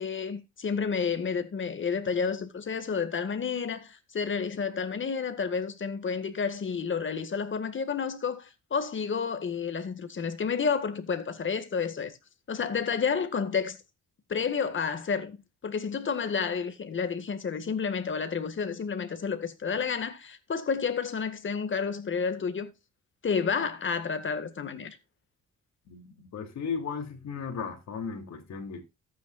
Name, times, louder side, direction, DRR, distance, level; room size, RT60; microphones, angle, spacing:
voice 1, 0.0-12.1 12.5-13.8 14.3-15.4 15.6-22.7 23.2-25.0, left 6 dB, 40° left, 1.9 m, -30 dB
voice 2, 25.9-28.8, left 6 dB, 65° left, 3.2 m, -36 dB
13.5 x 9.5 x 2.5 m
cardioid pair, 90°, 30 cm